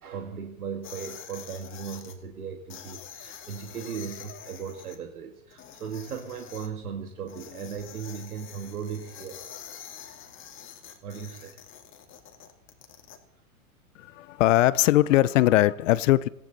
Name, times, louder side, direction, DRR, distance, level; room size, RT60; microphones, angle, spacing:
voice 1, 0.0-9.4 11.0-11.6, right 7 dB, 85° right, 1.8 m, -37 dB
sound 1, 0.8-2.1 2.7-5.0 5.5-6.7 7.3-13.2, left 9 dB, 30° left, 2.0 m, -46 dB
voice 2, 14.0-16.3, left 15 dB, 60° left, 0.7 m, -21 dB
18.0 x 15.0 x 4.0 m
hypercardioid pair, 115°, 43 cm